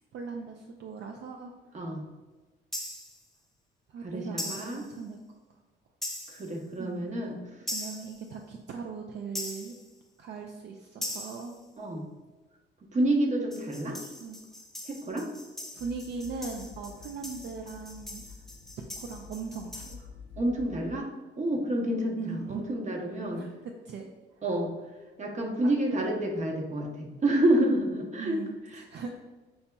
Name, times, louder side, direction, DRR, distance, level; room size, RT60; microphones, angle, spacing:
voice 1, 0.1-1.5 3.9-5.2 6.8-7.0 7.7-9.7 10.2-11.6 14.0-14.4 15.7-18.2 18.8-20.1 22.2-22.7 23.3-24.1 25.6-25.7 28.2-29.2, right 5 dB, 60° right, 2 dB, 0.4 m, -39 dB
voice 2, 1.7-2.0 4.0-4.8 6.3-7.4 11.8-12.0 12.9-14.0 14.8-15.3 20.4-21.1 21.4-23.5 24.4-24.7 25.2-28.4 28.7-28.8, right 1 dB, 35° right, 1 dB, 0.8 m, -28 dB
sound 1, 2.7-3.2 4.4-4.9 6.0-6.5 7.7-8.2 9.4-9.9 11.0-11.6 13.5-20.0, left 1 dB, ahead, 0.6 m, -40 dB
sound 2, 15.8-21.0, left 5 dB, 30° left, 0.9 m, -49 dB
5.5 x 2.8 x 2.2 m, 1.2 s
cardioid pair, 90°, 20 cm